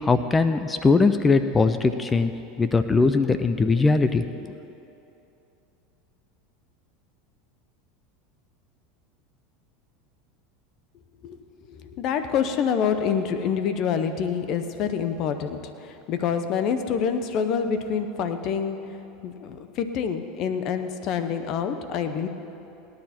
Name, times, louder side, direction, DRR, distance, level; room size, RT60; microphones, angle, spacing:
voice 1, 0.0-2.3 2.6-4.5, left 4 dB, 20° left, 10 dB, 0.6 m, -21 dB
voice 2, 11.7-22.3, left 7 dB, 50° left, 9 dB, 1.0 m, -27 dB
18.5 x 10.5 x 4.4 m, 2.8 s
hypercardioid pair, 100°, 0 cm